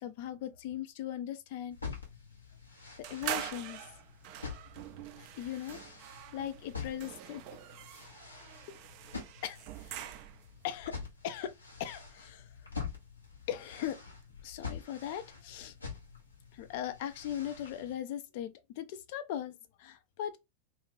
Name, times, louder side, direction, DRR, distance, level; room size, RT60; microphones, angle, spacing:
voice 1, 0.0-1.8 3.1-3.8 5.2-5.8 6.3-7.4 9.4-10.0 10.6-11.0 11.2-11.5 11.8-12.5 13.5-14.0 14.4-15.7 16.5-20.4, left 11 dB, 50° left, 0.4 m, -39 dB
sound 1, 1.7-17.9, left 5 dB, 80° left, 0.9 m, -46 dB
sound 2, 3.0-10.6, right 11 dB, 45° right, 0.3 m, -44 dB
2.5 x 2.4 x 3.2 m
figure-of-eight pair, 90°, 0 cm